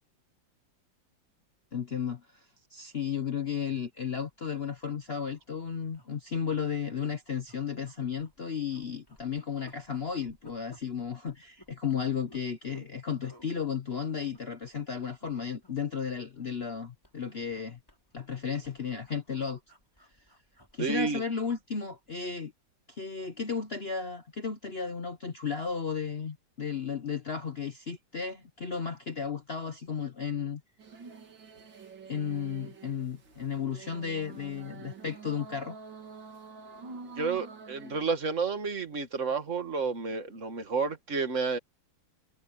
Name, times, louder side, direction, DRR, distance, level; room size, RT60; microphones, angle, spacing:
voice 1, 1.7-2.4 2.7-17.8 18.1-19.6 20.7-22.5 22.9-30.6 32.1-35.8, left 6 dB, 40° left, 1.0 m, -34 dB
sound 1, 5.3-5.5 5.9-6.6 7.0-7.1 7.5-8.4 8.7-12.9 13.2-13.5 14.1-14.9 15.2-15.3 15.6-16.8 17.0-21.6 21.9-22.1, equal, 10° left, 5.5 m, -59 dB
voice 2, 20.8-21.2 37.2-41.6, right 4 dB, 40° right, 2.2 m, -30 dB
sound 2, 30.8-38.1, right 4 dB, 70° right, 3.1 m, -47 dB
omnidirectional pair, 2.1 m